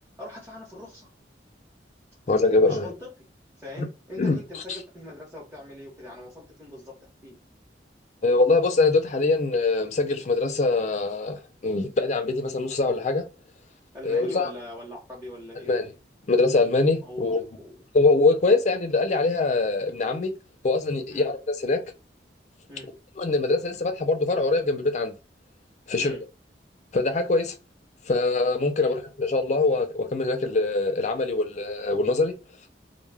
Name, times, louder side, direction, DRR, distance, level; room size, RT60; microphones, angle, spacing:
voice 1, 0.2-1.1 2.6-3.1 3.6-7.0 7.2-7.4 13.9-15.9 17.0-17.2 17.6-17.7 21.1-21.3 22.7-22.9 26.0-26.2 28.8-29.0, left 1 dB, 10° right, 0.8 m, -41 dB
voice 2, 2.3-2.9 3.8-3.9 4.2-4.4 8.2-13.3 14.0-14.5 15.7-15.9 16.3-17.4 17.9-20.3 20.6-21.8 23.2-25.1 25.9-26.1 26.9-27.5 28.1-32.3, left 3 dB, 40° left, 0.4 m, -23 dB
2.2 x 2.1 x 3.2 m
head